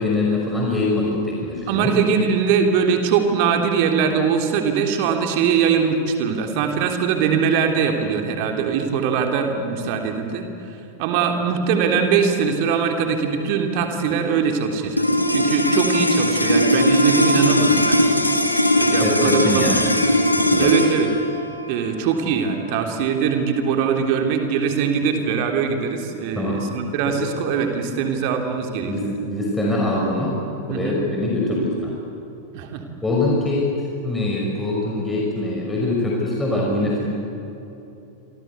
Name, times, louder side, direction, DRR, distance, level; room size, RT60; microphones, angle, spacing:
voice 1, 0.0-1.9 19.0-19.8 20.4-20.7 26.4-26.6 27.0-27.2 28.9-30.4 30.7-31.9 33.0-33.7 34.0-37.1, left 2 dB, 10° left, -3 dB, 5.5 m, -23 dB
voice 2, 1.7-15.0 15.3-18.1 18.8-20.0 20.6-21.1 21.7-29.1 30.7-31.0 32.5-32.8, right 6 dB, 45° right, 4 dB, 3.4 m, -22 dB
sound 1, 14.9-25.4, left 1 dB, 85° left, 2.4 m, -20 dB
28.5 x 25.0 x 8.3 m, 2.9 s
figure-of-eight pair, 90°, 0 cm